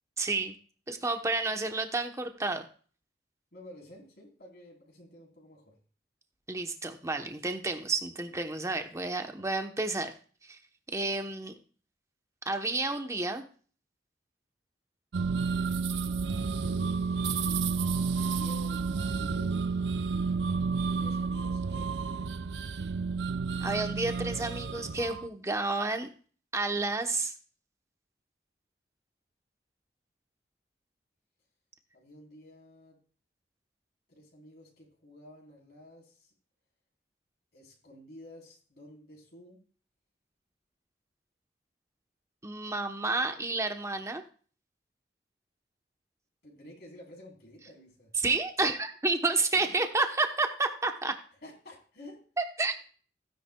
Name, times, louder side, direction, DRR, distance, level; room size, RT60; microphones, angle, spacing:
voice 1, 0.2-0.5 0.9-2.7 6.5-10.1 10.4-10.6 10.9-11.5 12.5-13.4 23.6-26.1 26.5-27.3 42.4-44.2 48.2-51.2 52.4-52.8, right 3 dB, 15° right, 6 dB, 0.9 m, -30 dB
voice 2, 3.5-5.8 9.3-9.5 16.6-19.8 21.0-22.1 31.9-33.0 34.1-36.3 37.5-39.6 46.4-48.1 49.5-49.8 51.4-52.2, left 1 dB, 60° left, -2 dB, 3.8 m, -51 dB
sound 1, 15.1-25.3, right 5 dB, 75° right, 0.5 m, -31 dB
16.0 x 10.0 x 2.3 m, 0.42 s
head